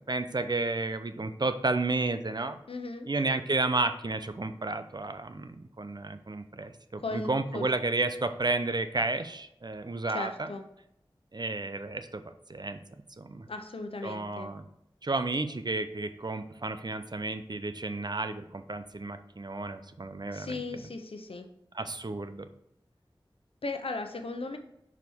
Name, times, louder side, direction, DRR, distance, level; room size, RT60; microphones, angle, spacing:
voice 1, 0.0-2.6 3.1-10.5 11.3-12.8 13.2-13.5 14.0-14.6 15.0-20.6 21.7-22.5, right 3 dB, 50° right, 9 dB, 0.6 m, -32 dB
voice 2, 2.7-3.1 7.0-7.7 10.1-10.6 13.5-14.5 20.3-21.5 23.6-24.6, left 3 dB, 85° left, 6 dB, 0.8 m, -36 dB
6.1 x 4.8 x 3.5 m, 0.81 s
wide cardioid pair, 40°, 9 cm